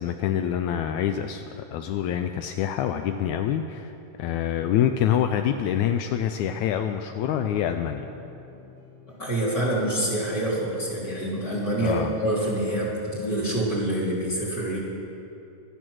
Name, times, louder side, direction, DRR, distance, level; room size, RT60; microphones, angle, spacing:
voice 1, 0.0-8.1 11.8-12.1, left 9 dB, 85° left, 7 dB, 1.7 m, -26 dB
sound 1, 4.6-12.7, left 3 dB, 45° left, 5.5 m, -49 dB
voice 2, 9.2-14.8, right 1 dB, 25° left, -6 dB, 3.5 m, -26 dB
16.5 x 12.5 x 6.2 m, 2.8 s
omnidirectional pair, 3.9 m